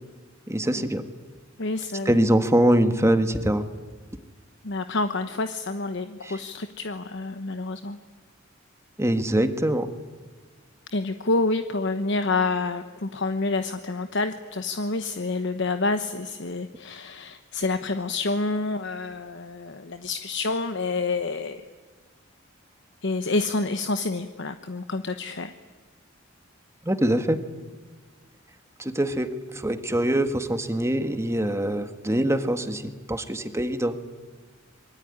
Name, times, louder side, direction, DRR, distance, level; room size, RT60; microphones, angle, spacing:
voice 1, 0.5-1.0 2.0-3.7 6.2-6.4 9.0-9.9 26.8-27.4 28.8-29.3 29.5-34.0, right 1 dB, 15° right, 8 dB, 1.7 m, -23 dB
voice 2, 1.6-2.2 4.6-8.0 10.9-21.6 23.0-25.5, left 3 dB, 60° left, 9 dB, 1.1 m, -28 dB
26.0 x 22.5 x 9.9 m, 1.4 s
head